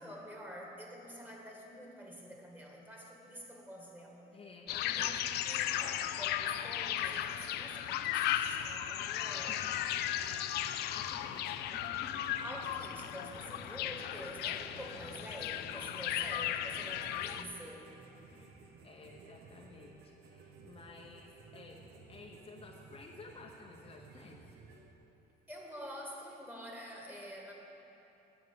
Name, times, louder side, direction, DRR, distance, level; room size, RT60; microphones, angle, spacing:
voice 1, 0.0-4.2 4.7-9.6 12.4-18.0 25.5-27.5, equal, 10° right, -1 dB, 1.9 m, -48 dB
voice 2, 4.3-5.2 9.5-10.0 10.9-12.5 18.3-24.5, left 3 dB, 35° left, 0 dB, 0.8 m, -54 dB
sound 1, 4.7-17.4, left 11 dB, 75° left, 0.5 m, -36 dB
sound 2, 9.3-24.9, right 4 dB, 75° right, 1.2 m, -56 dB
10.5 x 6.9 x 7.0 m, 3.0 s
cardioid pair, 110°, 17 cm